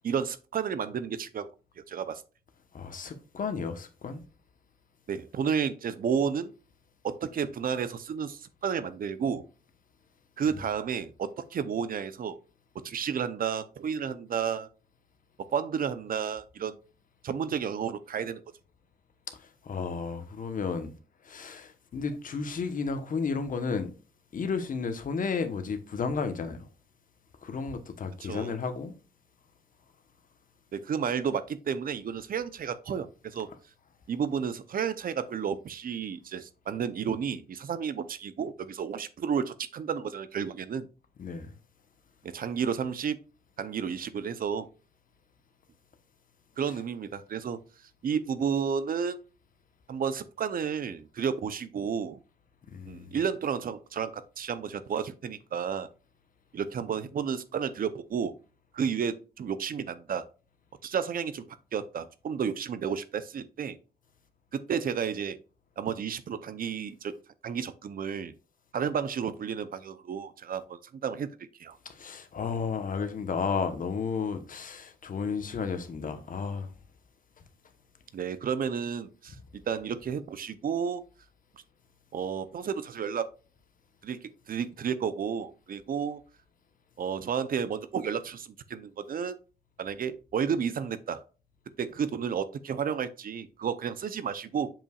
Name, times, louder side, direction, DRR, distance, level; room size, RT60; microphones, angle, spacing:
voice 1, 0.0-1.5 1.9-2.2 5.1-6.5 7.0-9.4 10.4-12.4 12.8-14.7 15.4-16.8 17.2-18.4 28.2-28.5 30.7-33.5 34.1-40.9 42.2-43.2 43.6-44.7 46.6-47.6 48.0-49.2 49.9-52.2 52.9-55.9 56.5-58.3 58.7-60.3 60.8-63.8 64.5-65.4 65.8-67.1 67.4-68.3 68.7-71.3 71.6-71.8 78.1-81.0 82.1-83.3 84.0-86.2 87.0-89.4 89.8-91.2 91.8-94.7, right 7 dB, 60° right, 0.7 m, -32 dB
voice 2, 2.7-4.2 19.3-20.9 21.2-23.9 24.3-26.6 27.4-28.9 41.2-41.5 52.7-53.2 71.8-76.7, left 5 dB, 55° left, 1.1 m, -33 dB
7.1 x 5.6 x 2.4 m
wide cardioid pair, 125°, 16 cm